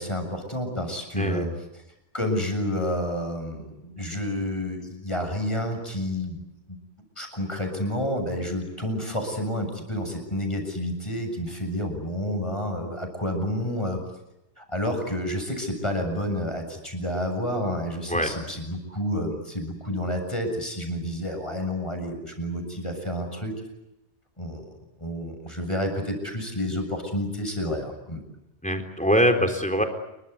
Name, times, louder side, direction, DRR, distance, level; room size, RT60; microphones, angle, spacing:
voice 1, 0.0-1.8 2.1-6.8 7.2-14.0 14.6-23.6 24.4-24.7 25.0-28.2, equal, 25° left, 4 dB, 7.5 m, -30 dB
voice 2, 1.1-1.6 18.1-18.3 28.6-29.8, equal, 5° left, 6 dB, 3.8 m, -23 dB
29.0 x 23.5 x 8.3 m, 0.91 s
omnidirectional pair, 1.2 m